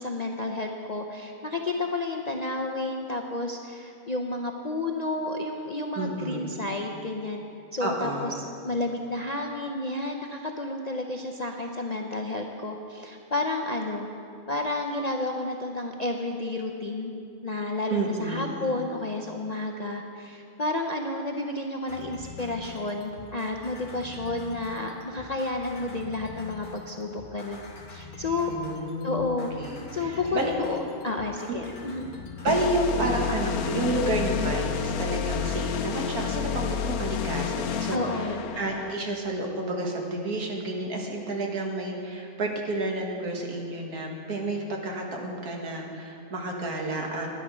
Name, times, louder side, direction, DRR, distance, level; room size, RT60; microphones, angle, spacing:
voice 1, 0.0-7.4 7.7-8.4 8.6-14.1 14.5-17.1 17.4-27.6 27.9-28.5 29.0-29.5 29.9-30.8 31.0-32.1 37.9-38.5, left 2 dB, 50° left, 2 dB, 0.5 m, -31 dB
voice 2, 6.0-6.5 7.8-8.4 17.9-18.7 28.5-29.3 29.6-30.5 31.5-31.6 32.4-47.3, right 2 dB, 90° right, 1 dB, 2.0 m, -30 dB
sound 1, 21.9-34.2, left 5 dB, 65° left, 1.7 m, -44 dB
sound 2, 32.5-38.9, left 7 dB, 80° left, 1.1 m, -30 dB
11.5 x 10.5 x 6.1 m, 2.5 s
omnidirectional pair, 1.6 m